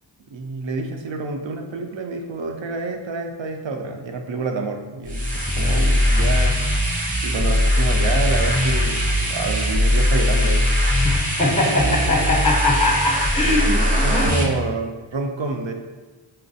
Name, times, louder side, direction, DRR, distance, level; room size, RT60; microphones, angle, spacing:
voice 1, 0.3-6.6 7.2-10.7 11.4-12.1 13.4-15.7, right 3 dB, 65° right, 4 dB, 0.5 m, -28 dB
sound 1, 5.0-14.4, left 1 dB, 15° right, 0.7 m, -20 dB
voice 2, 10.9-14.4, left 1 dB, 15° left, -2 dB, 0.7 m, -21 dB
4.2 x 2.3 x 2.6 m, 1.2 s
wide cardioid pair, 40°, 50 cm